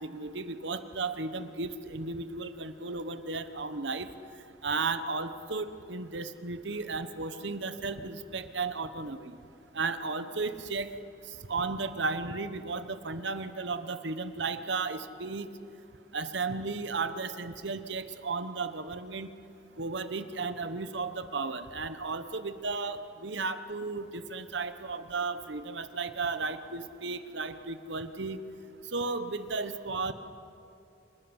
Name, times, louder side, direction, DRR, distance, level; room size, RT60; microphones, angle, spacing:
voice 1, 0.0-4.1 4.6-9.4 9.7-10.9 11.5-15.5 16.1-19.3 19.8-28.4 28.9-30.1, right 4 dB, 70° right, 11 dB, 1.1 m, -34 dB
26.5 x 12.5 x 9.8 m, 2.8 s
head